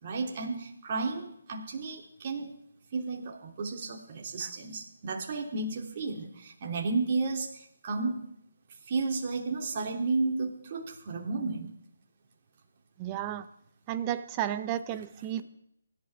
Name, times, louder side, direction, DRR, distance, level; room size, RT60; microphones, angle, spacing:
voice 1, 0.0-2.5 2.9-8.2 8.9-11.7, right 3 dB, 40° right, 0 dB, 3.1 m, -32 dB
voice 2, 13.0-13.5 13.9-15.4, right 11 dB, 25° right, 12 dB, 0.8 m, -32 dB
24.0 x 12.0 x 3.6 m, 0.72 s
figure-of-eight pair, 150°, 0 cm